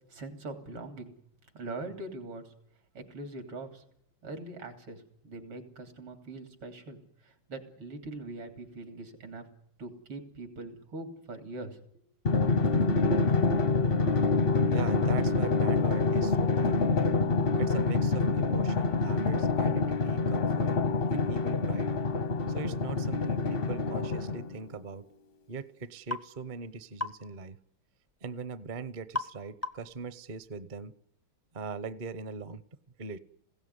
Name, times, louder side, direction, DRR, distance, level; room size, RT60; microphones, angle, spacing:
voice 1, 0.1-1.1 1.5-2.5 2.9-3.8 4.2-9.5 9.8-11.8, right 2 dB, 90° right, 6 dB, 4.0 m, -42 dB
Drum, 12.2-24.6, left 3 dB, 50° left, 0.6 m, -26 dB
voice 2, 14.7-17.0 17.6-20.7 21.1-21.9 22.5-25.0 25.5-27.6 28.2-30.9 31.5-32.6 33.0-33.2, right 4 dB, 45° right, 14 dB, 0.6 m, -40 dB
sound 1, 26.1-26.3 27.0-27.2 29.1-29.4 29.6-30.0, left 2 dB, 25° left, 0.3 m, -34 dB
20.0 x 16.5 x 9.7 m, 0.71 s
omnidirectional pair, 2.3 m